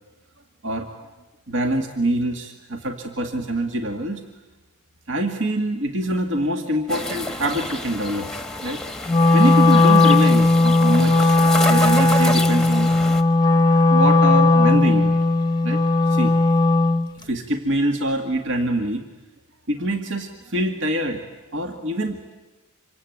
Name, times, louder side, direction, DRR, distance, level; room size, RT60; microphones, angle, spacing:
voice 1, 1.5-4.2 5.1-8.3 8.6-8.8 9.3-11.4 11.7-12.9 13.3-15.1 15.6-16.3 17.2-19.0 19.7-21.2 21.5-22.2, right 1 dB, 60° right, 5 dB, 2.0 m, -24 dB
sound 1, 6.9-13.2, left 2 dB, 5° left, 1.2 m, -29 dB
Wind instrument woodwind instrument, 9.1-17.1, left 2 dB, 20° left, 0.8 m, -16 dB
26.5 x 24.0 x 9.4 m, 1.1 s
head